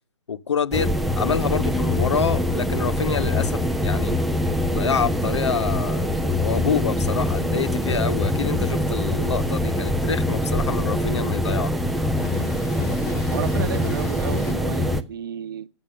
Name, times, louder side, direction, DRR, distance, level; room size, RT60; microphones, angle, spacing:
voice 1, 0.3-4.1 4.7-11.7, left 6 dB, 85° left, 0.7 m, -27 dB
sound 1, 0.7-15.0, left 1 dB, ahead, 0.4 m, -23 dB
Train, 5.4-14.5, left 4 dB, 40° left, 3.4 m, -41 dB
voice 2, 13.3-15.7, right 9 dB, 50° right, 0.9 m, -32 dB
11.0 x 7.2 x 6.6 m
hypercardioid pair, 145°, 14 cm